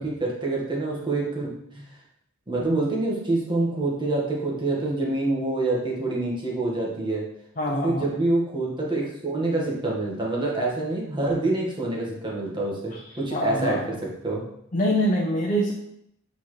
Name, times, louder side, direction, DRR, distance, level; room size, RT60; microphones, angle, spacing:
voice 1, 0.0-1.8 2.5-7.2 7.8-14.4, right 2 dB, 25° right, -3 dB, 1.5 m, -26 dB
voice 2, 7.6-8.1 13.3-13.8 14.7-15.7, equal, 40° left, -2 dB, 0.8 m, -24 dB
8.1 x 4.4 x 3.2 m, 0.75 s
head